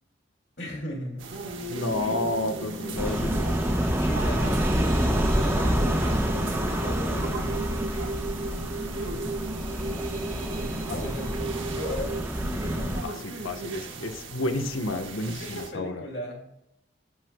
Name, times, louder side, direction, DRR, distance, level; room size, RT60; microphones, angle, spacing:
voice 1, 0.6-1.3 4.0-8.0 8.8-9.3 10.4-12.1 12.7-13.2 15.3-16.4, left 1 dB, 55° left, 0 dB, 2.7 m, -38 dB
sound 1, 1.2-15.7, right 3 dB, 75° right, 1.5 m, -39 dB
voice 2, 1.7-3.5 10.9-11.1 13.0-16.0, left 2 dB, 85° left, 6 dB, 1.1 m, -31 dB
sound 2, 1.8-12.2, right 2 dB, 45° right, 1.3 m, -35 dB
sound 3, 3.0-13.0, equal, 10° right, 1.0 m, -27 dB
11.5 x 7.9 x 2.3 m, 0.80 s
head